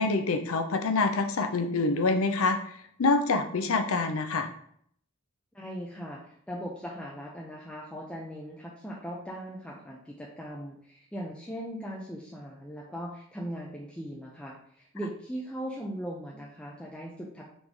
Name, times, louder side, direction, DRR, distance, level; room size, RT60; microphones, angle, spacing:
voice 1, 0.0-2.6 3.0-4.5, left 3 dB, 70° left, 7 dB, 0.5 m, -26 dB
voice 2, 5.5-17.4, equal, 5° left, -4 dB, 0.4 m, -39 dB
4.0 x 3.1 x 3.5 m, 0.65 s
head